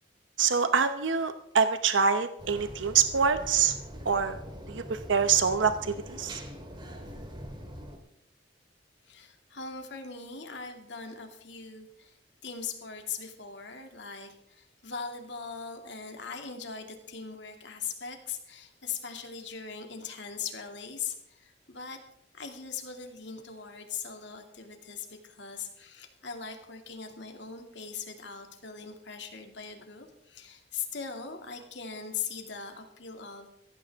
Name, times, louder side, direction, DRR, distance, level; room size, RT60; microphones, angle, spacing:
voice 1, 0.4-3.7 4.0-4.4 4.7-6.4, right 6 dB, 85° right, 9 dB, 0.9 m, -25 dB
sound 1, 2.4-8.0, equal, 25° right, 2.3 m, -43 dB
voice 2, 9.1-12.2 12.4-22.0 22.3-33.5, left 6 dB, 70° left, 4 dB, 2.4 m, -40 dB
16.0 x 15.5 x 3.6 m, 0.77 s
head